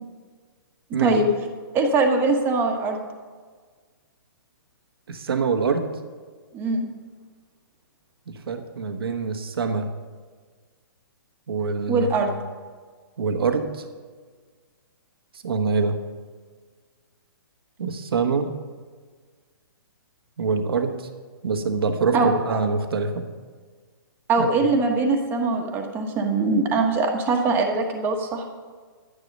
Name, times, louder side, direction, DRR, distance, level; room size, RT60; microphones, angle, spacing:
voice 1, 1.7-3.0 6.5-6.9 11.9-12.3 22.1-22.3 24.3-28.5, right 3 dB, 15° right, 3 dB, 1.3 m, -22 dB
voice 2, 5.1-6.0 8.5-9.9 11.5-12.3 13.2-13.8 15.4-16.0 17.8-18.6 20.4-21.0 21.4-23.3 24.4-24.7, right 5 dB, 80° right, 6 dB, 1.3 m, -25 dB
11.5 x 9.9 x 5.3 m, 1.5 s
hypercardioid pair, 155°, 12 cm